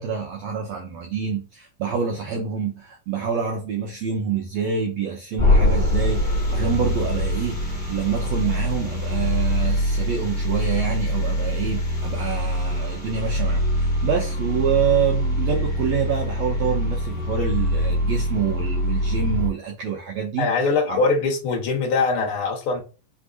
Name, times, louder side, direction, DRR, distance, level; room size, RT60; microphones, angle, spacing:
voice 1, 0.0-20.5 20.9-21.0, right 7 dB, 80° right, 1.6 m, -27 dB
sound 1, 5.4-19.5, left 1 dB, 10° left, 0.9 m, -23 dB
voice 2, 20.4-22.8, left 4 dB, 65° left, 1.4 m, -22 dB
4.8 x 3.4 x 2.5 m
omnidirectional pair, 3.8 m